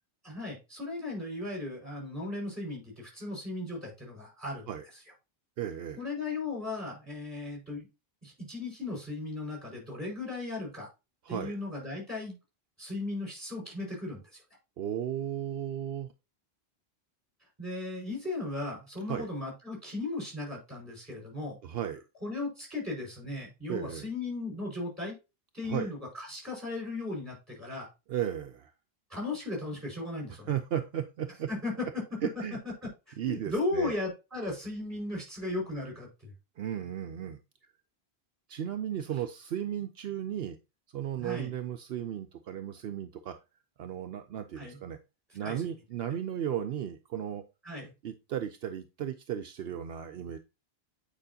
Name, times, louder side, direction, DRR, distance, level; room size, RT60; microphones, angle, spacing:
voice 1, 0.2-5.0 6.0-7.9 8.2-10.9 11.3-12.4 12.8-14.4 17.6-21.6 22.2-25.1 25.5-27.9 29.1-30.5 31.5-31.8 32.8-36.3 41.2-41.5 44.6-44.8 45.4-45.7 47.6-47.9, left 2 dB, 15° right, 4.9 m, -36 dB
voice 2, 5.6-6.0 11.2-11.6 14.8-16.1 19.1-19.3 21.6-22.0 23.7-24.1 25.6-25.9 28.1-28.7 30.5-31.5 32.2-32.6 33.2-34.0 36.6-37.4 38.5-40.6 40.9-43.4 43.8-45.0 45.3-47.4 48.0-50.4, right 10 dB, 75° right, 0.8 m, -35 dB
9.0 x 5.0 x 2.7 m
omnidirectional pair, 1.1 m